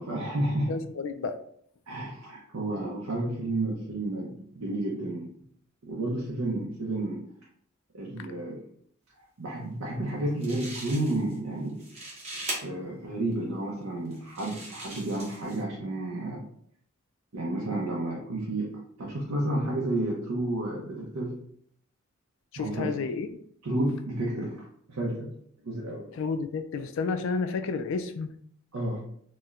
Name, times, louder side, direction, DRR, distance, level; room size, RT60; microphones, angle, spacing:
voice 1, 0.0-0.7 1.9-5.3 5.8-7.2 7.9-8.6 9.4-11.8 12.6-16.4 17.3-18.7 19.0-21.3 22.6-23.0 23.6-24.6 24.9-25.3 25.7-26.1 28.7-29.0, right 1 dB, 80° right, -3 dB, 0.7 m, -31 dB
voice 2, 0.7-1.4 22.5-23.3 26.1-28.3, left 4 dB, 65° left, 8 dB, 0.3 m, -31 dB
sound 1, 10.1-10.2 10.4-11.4 11.7-12.6 13.3-13.4 14.1-15.6, right 2 dB, 30° right, 0.8 m, -39 dB
4.1 x 2.1 x 2.4 m, 0.66 s
head